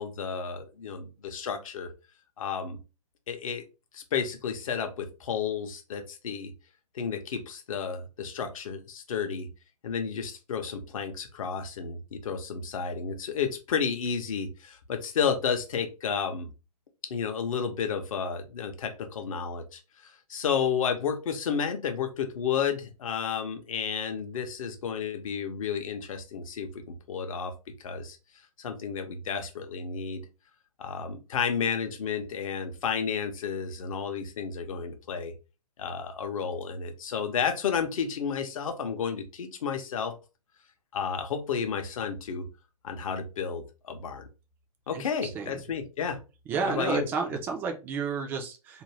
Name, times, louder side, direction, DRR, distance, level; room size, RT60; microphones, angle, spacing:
voice 1, 0.0-1.9 2.4-2.8 3.3-3.6 3.9-6.5 6.9-9.5 9.8-16.5 17.0-27.5 27.8-28.2 28.6-30.2 30.8-35.3 35.8-40.1 40.9-42.5 42.8-44.3 44.9-46.2 46.6-47.1, left 6 dB, 55° left, 7 dB, 0.7 m, -32 dB
voice 2, 46.5-48.8, right 5 dB, 10° right, 3 dB, 0.3 m, -31 dB
2.5 x 2.2 x 3.2 m, 0.30 s
figure-of-eight pair, 125°, 20 cm